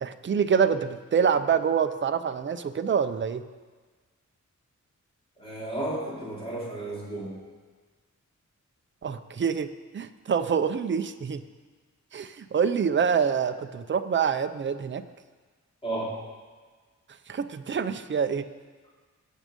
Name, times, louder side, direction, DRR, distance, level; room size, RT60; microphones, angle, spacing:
voice 1, 0.0-3.4 9.0-9.7 9.9-11.4 12.1-15.0 17.3-18.5, right 7 dB, 40° right, 9 dB, 0.6 m, -26 dB
voice 2, 5.4-7.4 15.8-16.2, right 2 dB, 20° left, -6 dB, 3.5 m, -33 dB
18.5 x 7.4 x 5.3 m, 1.4 s
wide cardioid pair, 175°, 30 cm